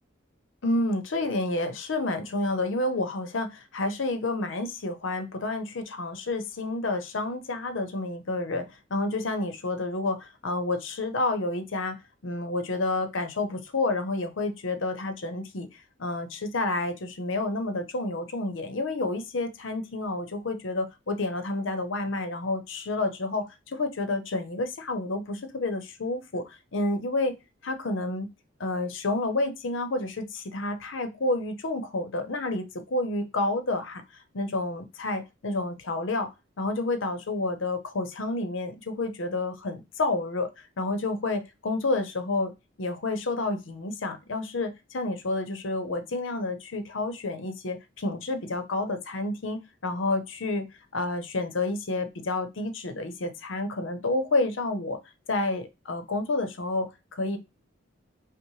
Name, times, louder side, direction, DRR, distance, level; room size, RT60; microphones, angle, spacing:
voice 1, 0.6-12.0 12.2-27.3 27.6-28.3 28.6-34.0 34.3-36.3 36.6-42.5 42.8-50.7 50.9-55.0 55.3-57.4, left 2 dB, 70° left, 8 dB, 0.7 m, -29 dB
5.5 x 2.1 x 3.0 m, 0.25 s
head